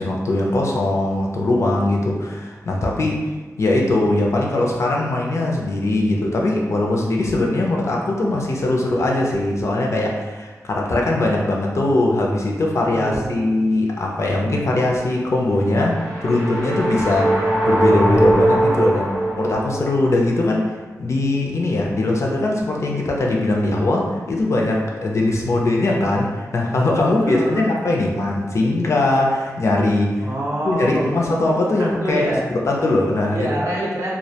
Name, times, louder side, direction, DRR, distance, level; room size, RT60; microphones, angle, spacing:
voice 1, 0.0-3.2 3.6-20.7 21.0-30.3 30.6-33.5, left 2 dB, 55° left, -1 dB, 0.4 m, -20 dB
voice 2, 12.9-13.4 27.0-27.7 30.2-31.3 31.8-32.5 33.3-34.1, right 1 dB, 55° right, -5 dB, 0.6 m, -26 dB
sound 1, 15.7-20.0, right 1 dB, 90° right, 0.8 m, -20 dB
2.2 x 2.1 x 2.7 m, 1.3 s
wide cardioid pair, 130°, 6 cm